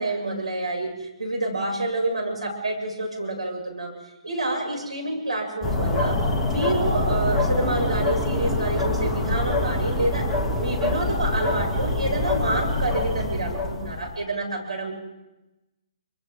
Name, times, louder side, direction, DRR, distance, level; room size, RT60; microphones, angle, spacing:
voice 1, 0.0-3.9 4.2-6.2 6.5-10.3 10.6-14.9, right 2 dB, 75° right, 1 dB, 7.6 m, -28 dB
sound 1, 5.6-14.2, left 2 dB, 10° left, 1.9 m, -25 dB
29.5 x 26.5 x 3.9 m, 0.98 s
figure-of-eight pair, 135°, 3 cm